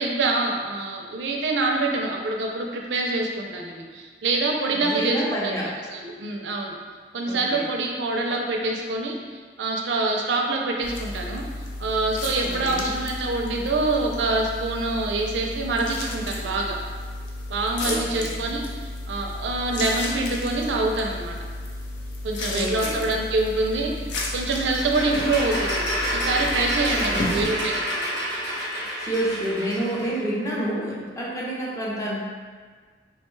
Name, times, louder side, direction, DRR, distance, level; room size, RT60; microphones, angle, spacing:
voice 1, 0.0-5.5 5.9-6.7 7.1-9.2 9.6-11.4 11.8-16.8 17.5-21.4 22.2-24.1 24.3-25.8 26.1-28.0, right 2 dB, 75° right, 1 dB, 0.4 m, -25 dB
voice 2, 4.7-5.7 7.3-7.7 12.4-12.9 17.8-18.3 22.5-23.1 27.1-27.5 29.0-32.2, right 1 dB, 20° left, -5 dB, 0.6 m, -29 dB
sound 1, 10.8-27.4, left 2 dB, 85° left, 0.5 m, -33 dB
sound 2, 24.5-30.2, equal, 65° left, 1.1 m, -29 dB
3.4 x 2.2 x 3.1 m, 1.5 s
head